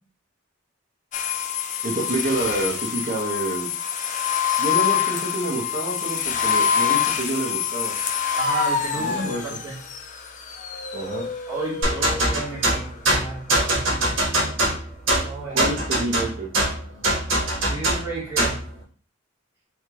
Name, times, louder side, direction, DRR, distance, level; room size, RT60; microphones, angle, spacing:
sound 1, 1.1-12.8, left 8 dB, 40° left, 0.4 m, -26 dB
voice 1, 1.8-3.7 4.6-7.9 9.0-9.6 10.9-11.2 15.5-16.5, right 2 dB, 40° right, -1 dB, 0.7 m, -28 dB
voice 2, 8.4-9.8 11.5-14.2 15.2-15.6 17.6-18.6, right 3 dB, 10° right, -9 dB, 1.3 m, -33 dB
sound 2, 11.8-18.7, right 1 dB, 65° right, 1.2 m, -23 dB
3.4 x 3.2 x 2.9 m, 0.41 s
head